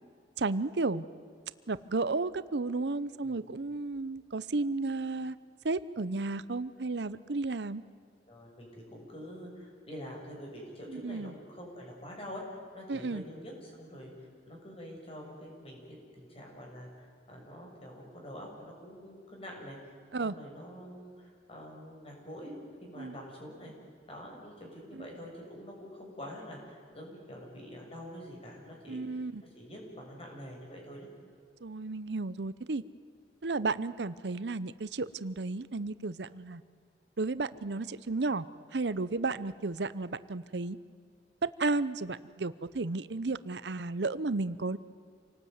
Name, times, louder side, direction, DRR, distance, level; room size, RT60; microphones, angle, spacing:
voice 1, 0.4-1.0 1.7-5.4 5.6-7.8 10.9-11.3 12.9-13.2 20.1-20.3 23.0-23.2 24.9-25.1 28.9-29.4 31.6-32.8 33.4-36.6 37.2-38.4 38.7-40.8 41.4-44.8, right 3 dB, 75° right, 15 dB, 0.8 m, -33 dB
voice 2, 8.3-12.4 12.7-19.8 20.2-23.7 24.1-29.2 29.6-31.1, equal, 35° left, 0 dB, 7.1 m, -46 dB
27.5 x 19.0 x 9.5 m, 2.2 s
head